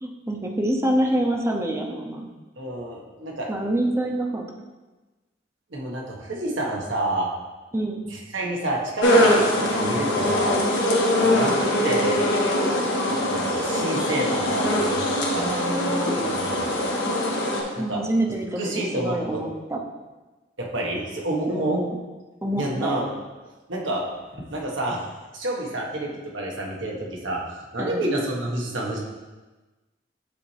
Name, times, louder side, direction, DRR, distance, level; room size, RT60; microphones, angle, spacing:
voice 1, 0.0-2.3 3.5-4.4 7.7-8.0 15.4-16.3 17.8-19.8 21.5-22.0 22.4-23.0 27.8-28.1, right 1 dB, 15° right, 1 dB, 0.7 m, -26 dB
voice 2, 2.6-3.5 5.7-7.3 8.1-10.6 11.2-12.2 13.1-15.0 15.3-15.5 16.1-16.7 17.7-18.0 18.6-19.4 20.6-21.8 22.6-23.1 23.7-24.0 24.5-25.0 25.3-29.0, right 1 dB, 80° right, -2 dB, 1.4 m, -29 dB
sound 1, 9.0-17.6, left 1 dB, 75° left, 1.3 m, -22 dB
8.5 x 4.2 x 3.3 m, 1.2 s
head